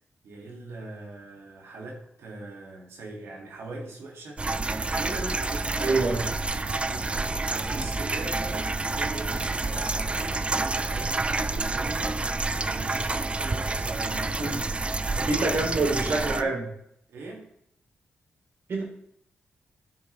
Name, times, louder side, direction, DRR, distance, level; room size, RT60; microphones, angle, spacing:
voice 1, 0.2-4.4 4.9-6.3 6.6-16.5 17.1-17.5, right 2 dB, 90° right, 0 dB, 2.2 m, -41 dB
sound 1, 4.4-16.4, right 3 dB, 30° right, 0.5 m, -28 dB
voice 2, 5.8-6.3 14.4-14.5 15.3-16.6 18.7-18.8, right 3 dB, 75° right, -1 dB, 3.1 m, -26 dB
14.0 x 4.7 x 3.4 m, 0.71 s
cardioid pair, 70°, 4 cm